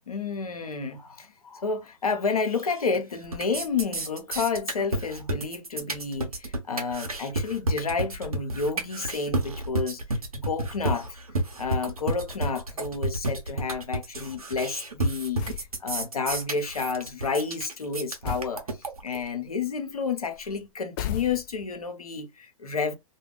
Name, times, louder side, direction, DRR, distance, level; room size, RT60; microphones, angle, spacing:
voice 1, 0.1-10.0 10.3-11.1 11.6-18.7 19.0-22.9, left 5 dB, 85° left, 0.7 m, -30 dB
sound 1, 2.5-3.0 3.2-19.2, right 1 dB, 90° right, 0.8 m, -31 dB
sound 2, 15.4-15.7 18.2-18.6 21.0-21.8, left 11 dB, 40° left, 0.4 m, -34 dB
2.3 x 2.2 x 3.3 m
figure-of-eight pair, 105°, 18 cm